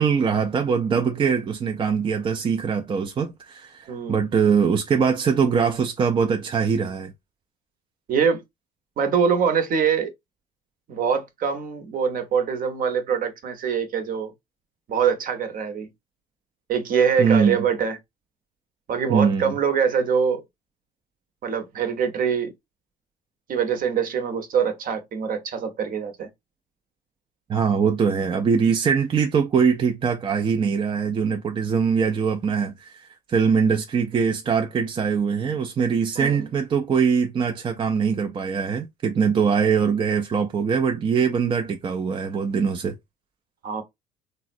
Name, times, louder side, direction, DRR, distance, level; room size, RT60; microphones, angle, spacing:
voice 1, 0.0-7.1 17.2-17.6 19.1-19.5 27.5-43.0, right 6 dB, 25° right, 0.4 m, -22 dB
voice 2, 3.9-4.3 8.1-8.4 9.0-10.1 10.9-14.3 14.9-15.9 16.7-18.0 18.9-20.4 21.4-22.5 23.5-26.3 36.2-36.5 43.6-43.8, right 7 dB, 45° right, 0.8 m, -24 dB
3.6 x 2.1 x 2.5 m
cardioid pair, 120°, 20 cm